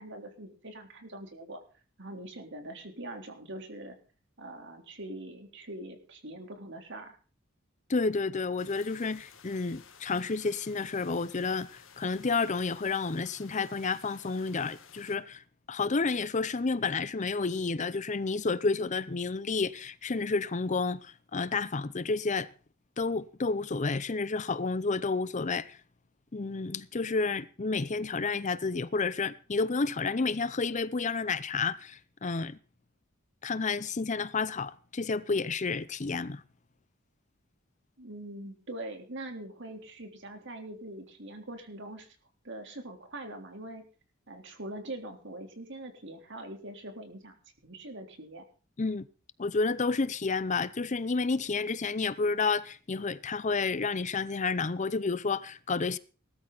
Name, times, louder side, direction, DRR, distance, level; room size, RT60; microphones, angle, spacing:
voice 1, 0.0-1.6 2.0-4.0 4.4-7.2 38.0-42.2 42.4-43.9 44.3-47.4 47.6-48.4, right 1 dB, 60° right, 3.5 m, -43 dB
voice 2, 7.9-15.4 15.7-22.5 23.0-25.8 26.3-32.6 33.4-36.4 48.8-49.1 49.4-56.0, left 4 dB, 35° left, 0.6 m, -30 dB
sound 1, 8.6-15.2, left 7 dB, 65° left, 1.9 m, -55 dB
19.5 x 13.0 x 4.0 m
head